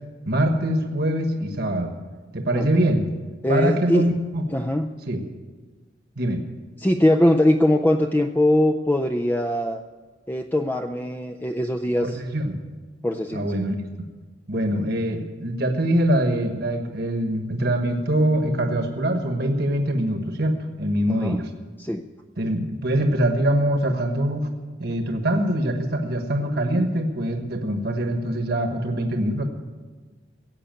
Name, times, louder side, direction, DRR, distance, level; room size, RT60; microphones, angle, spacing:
voice 1, 0.3-1.9 2.3-3.1 3.5-4.4 5.1-5.2 6.2-6.4 12.0-12.6 13.3-13.8 14.5-21.5 22.4-24.5 24.8-29.4, right 1 dB, 55° right, 4 dB, 1.3 m, -23 dB
voice 2, 2.5-2.9 3.4-4.1 4.5-4.9 6.8-9.8 10.3-12.2 13.0-13.6 21.1-21.4 21.8-22.0, left 1 dB, 10° left, 6 dB, 0.5 m, -22 dB
16.0 x 8.4 x 9.0 m, 1.4 s
head